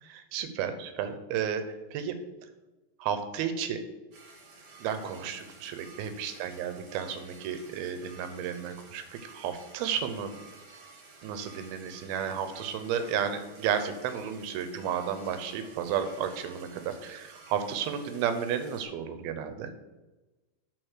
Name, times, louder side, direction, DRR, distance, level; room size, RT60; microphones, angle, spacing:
voice 1, 0.0-1.6 1.9-2.1 3.0-3.8 4.8-10.3 11.2-19.7, right 8 dB, 80° right, 9 dB, 2.6 m, -32 dB
sound 1, 4.1-18.8, right 3 dB, 55° right, 1.8 m, -52 dB
7.9 x 4.3 x 6.4 m, 1.1 s
omnidirectional pair, 4.4 m